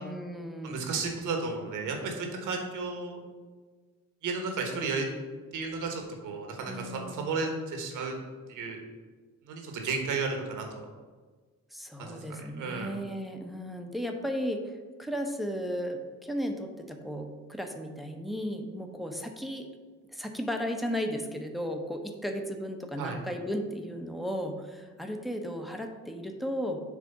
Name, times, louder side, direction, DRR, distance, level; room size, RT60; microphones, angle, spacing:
voice 1, 0.0-0.8 6.6-7.3 11.7-19.7 20.1-26.8, equal, ahead, 4 dB, 0.8 m, -35 dB
voice 2, 0.6-3.2 4.2-5.1 5.5-8.1 8.5-8.8 9.4-10.9 12.0-12.2 12.5-12.9 23.0-23.2, right 4 dB, 85° right, 3 dB, 1.4 m, -33 dB
7.4 x 3.4 x 5.4 m, 1.4 s
cardioid pair, 90°, 30 cm